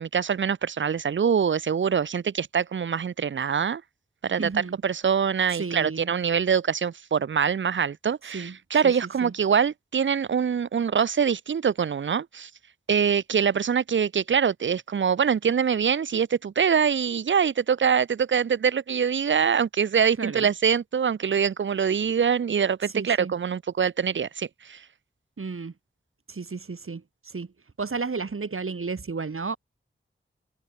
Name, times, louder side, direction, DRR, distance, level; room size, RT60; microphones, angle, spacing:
voice 1, 0.0-3.8 4.2-4.5 4.8-12.5 12.9-24.8, right 7 dB, 65° right, 0.5 m, -24 dB
voice 2, 4.4-4.8 5.5-6.1 8.3-8.6 8.8-9.3 20.2-20.5 22.9-23.3 25.4-25.7 26.3-27.5 27.8-29.6, right 4 dB, 80° right, 3.9 m, -33 dB
wide cardioid pair, 75°, 21 cm